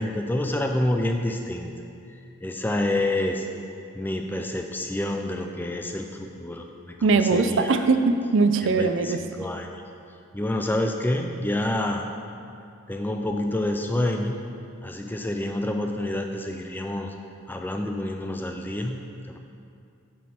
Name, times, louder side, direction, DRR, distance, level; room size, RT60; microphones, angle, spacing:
voice 1, 0.0-1.7 2.4-3.5 4.0-7.8 8.6-9.8 10.3-12.1 12.9-14.5 14.8-17.1 17.5-19.4, left 1 dB, 10° left, 3 dB, 0.4 m, -28 dB
voice 2, 7.0-9.2, right 4 dB, 55° right, 8 dB, 0.4 m, -21 dB
9.3 x 6.4 x 4.3 m, 2.5 s
head